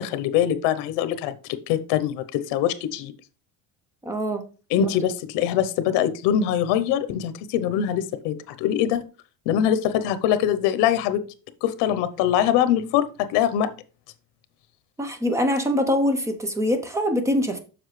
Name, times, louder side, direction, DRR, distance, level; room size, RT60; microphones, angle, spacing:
voice 1, 0.0-3.1 4.7-9.0 9.5-11.2 11.6-13.7, left 10 dB, 80° left, 12 dB, 0.9 m, -23 dB
voice 2, 4.0-4.4 4.8-4.9 15.0-17.6, equal, 5° right, 8 dB, 0.6 m, -23 dB
7.1 x 6.1 x 3.2 m, 0.34 s
cardioid pair, 180°, 41 cm